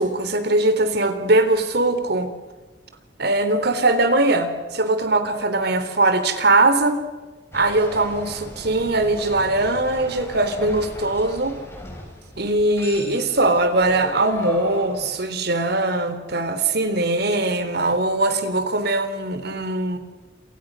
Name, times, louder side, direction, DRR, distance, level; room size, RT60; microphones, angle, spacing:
voice 1, 0.0-2.3 3.2-7.0 7.5-11.6 12.4-20.0, right 2 dB, 60° right, 9 dB, 3.7 m, -21 dB
sound 1, 7.5-15.1, left 1 dB, 15° left, 7.2 m, -37 dB
29.0 x 27.5 x 6.5 m, 1.3 s
head